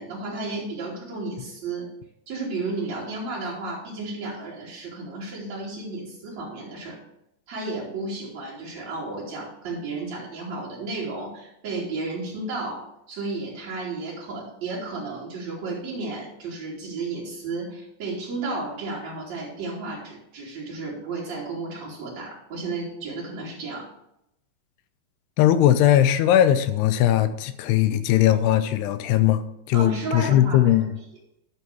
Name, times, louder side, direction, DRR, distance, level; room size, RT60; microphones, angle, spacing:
voice 1, 0.0-1.9 2.3-7.0 7.5-23.9 29.7-30.7, right 3 dB, 45° right, 4.2 m, -33 dB
voice 2, 25.4-29.4 29.7-30.8, left 11 dB, 85° left, 2.8 m, -19 dB
11.5 x 4.7 x 6.9 m
omnidirectional pair, 4.6 m